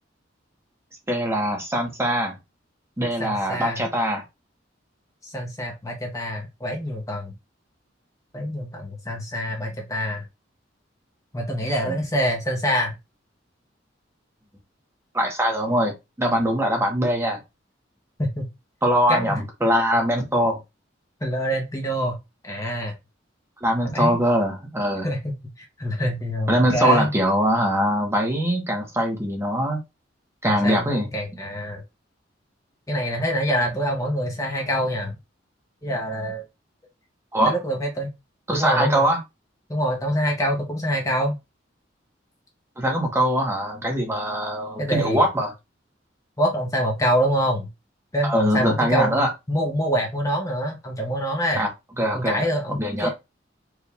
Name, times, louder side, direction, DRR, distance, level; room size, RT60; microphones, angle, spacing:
voice 1, 1.1-2.3 3.0-4.2 11.8-12.0 15.1-17.4 18.8-20.6 23.6-25.1 26.5-29.8 30.4-31.1 37.3-37.5 38.5-39.2 42.8-45.5 48.2-49.3 51.6-51.7 52.0-52.4 52.8-53.1, equal, 15° right, 1 dB, 1.1 m, -22 dB
voice 2, 3.2-3.8 5.2-7.3 8.3-10.2 11.3-12.9 18.2-18.4 19.1-19.4 21.2-22.2 22.4-22.9 23.9-24.2 25.0-25.3 25.8-27.1 30.4-31.8 32.9-35.1 35.8-36.4 37.4-38.1 38.5-39.1 39.7-41.4 44.8-45.2 46.4-47.7 48.1-51.6 52.1-53.1, equal, 20° left, 1 dB, 0.9 m, -25 dB
4.7 x 2.5 x 3.4 m, 0.23 s
head